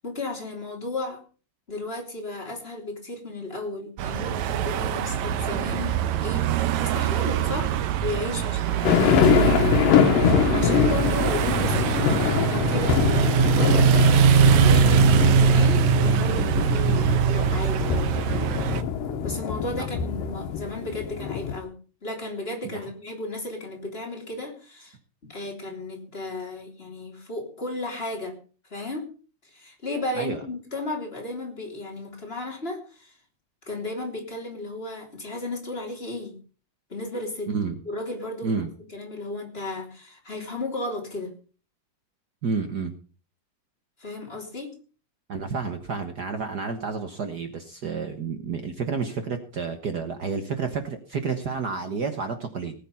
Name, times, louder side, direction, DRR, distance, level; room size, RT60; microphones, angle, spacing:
voice 1, 0.0-1.2 1.7-6.5 6.8-7.7 8.0-9.6 10.5-13.9 14.4-18.5 19.2-21.7 22.0-25.0 25.2-28.4 28.7-29.1 29.5-33.2 33.7-36.4 36.9-37.5 37.8-41.3 44.0-44.7, left 2 dB, 15° left, 1 dB, 3.2 m, -34 dB
sound 1, 4.0-18.8, right 7 dB, 70° right, 2.0 m, -22 dB
sound 2, 8.8-21.6, left 8 dB, 85° left, 2.8 m, -24 dB
voice 2, 37.5-37.8 38.4-38.7 42.4-42.9 45.3-52.7, right 5 dB, 85° right, 7 dB, 0.9 m, -30 dB
19.0 x 9.2 x 5.5 m, 0.38 s
omnidirectional pair, 3.8 m